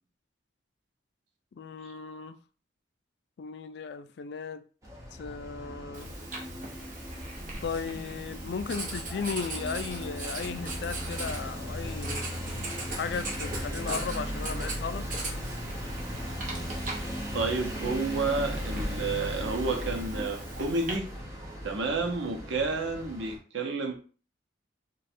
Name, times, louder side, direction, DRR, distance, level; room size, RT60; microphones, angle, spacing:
voice 1, 1.5-2.4 3.4-4.6 5.1-6.1 7.6-12.2 12.9-15.1, left 5 dB, 60° left, 0.3 m, -36 dB
sound 1, 4.8-23.4, equal, 15° right, 0.8 m, -37 dB
Writing, 5.9-20.9, right 2 dB, 45° right, 0.9 m, -40 dB
voice 2, 17.3-21.1 21.6-24.0, right 3 dB, 80° right, 0.7 m, -30 dB
3.2 x 2.3 x 4.3 m
head